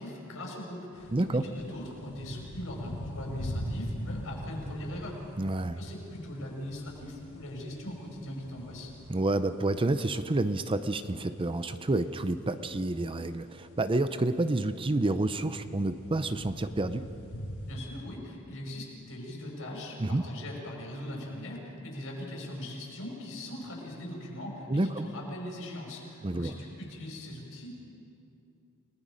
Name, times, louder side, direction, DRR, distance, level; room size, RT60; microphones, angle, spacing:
voice 1, 0.0-5.2 5.8-8.9 17.7-27.7, left 1 dB, 65° left, -1 dB, 5.7 m, -40 dB
sound 1, 0.9-17.8, equal, 90° left, 5.7 m, -43 dB
voice 2, 1.1-1.4 5.4-5.8 9.1-17.1 20.0-20.3 24.7-25.1 26.2-26.5, right 2 dB, 25° right, 11 dB, 0.6 m, -29 dB
30.0 x 19.5 x 5.2 m, 2.7 s
head